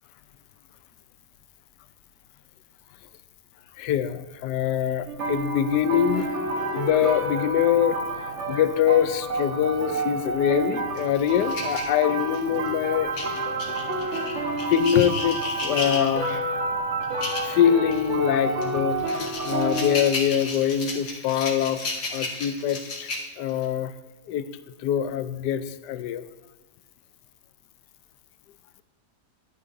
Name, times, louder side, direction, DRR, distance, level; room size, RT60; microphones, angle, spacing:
voice 1, 3.8-6.4 6.7-13.3 14.7-16.5 17.4-21.8 22.1-23.9 24.3-24.4 24.8-26.2, left 9 dB, 85° left, 13 dB, 1.2 m, -24 dB
sound 1, 5.1-20.0, right 2 dB, 50° right, 1.5 m, -29 dB
sound 2, 11.0-12.6 13.1-16.4 17.0-17.5 17.9-18.1 18.6-23.6, left 3 dB, 70° left, 2.0 m, -33 dB
12.0 x 9.4 x 2.6 m, 1.2 s
omnidirectional pair, 1.8 m